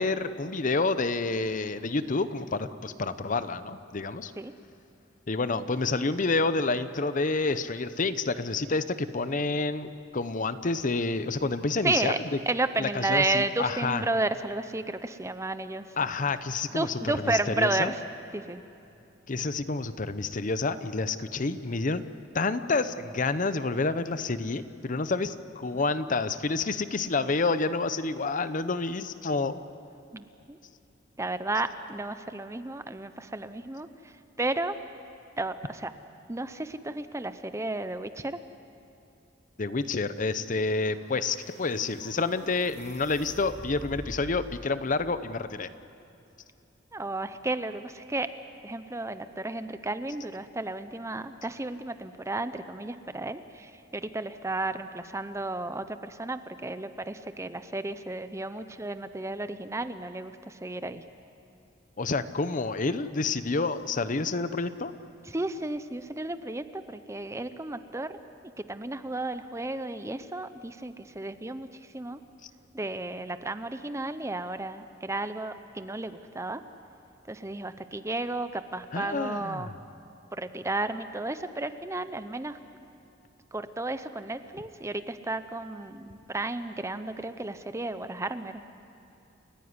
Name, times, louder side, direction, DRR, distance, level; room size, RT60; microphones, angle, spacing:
voice 1, 0.0-4.3 5.3-12.1 12.8-14.0 16.0-17.9 19.3-22.0 22.3-29.6 39.6-45.7 62.0-64.9 72.4-72.5 78.9-79.7, left 3 dB, 45° left, 12 dB, 0.7 m, -29 dB
voice 2, 11.8-12.2 12.5-15.9 16.7-18.0 18.3-18.6 30.1-30.6 31.2-34.8 35.4-35.9 36.3-38.4 46.9-48.3 48.6-61.0 65.3-68.2 68.6-71.7 71.9-72.2 72.7-76.6 77.3-79.7 80.3-82.6 83.5-88.6, right 2 dB, 15° right, 11 dB, 0.7 m, -32 dB
sound 1, 40.5-44.5, equal, 40° right, 2.6 m, -46 dB
29.5 x 14.5 x 9.6 m, 2.8 s
head